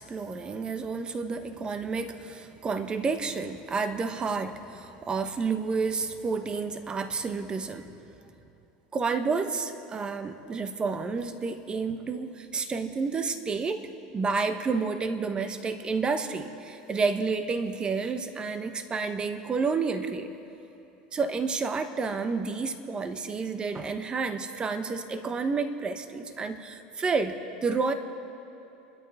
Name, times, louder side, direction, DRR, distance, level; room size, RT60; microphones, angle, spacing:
voice 1, 0.0-7.9 8.9-13.9 14.1-20.3 21.1-27.4 27.6-27.9, right 4 dB, 25° right, 8 dB, 1.1 m, -30 dB
29.0 x 12.5 x 3.6 m, 2.9 s
supercardioid pair, 115°, 4 cm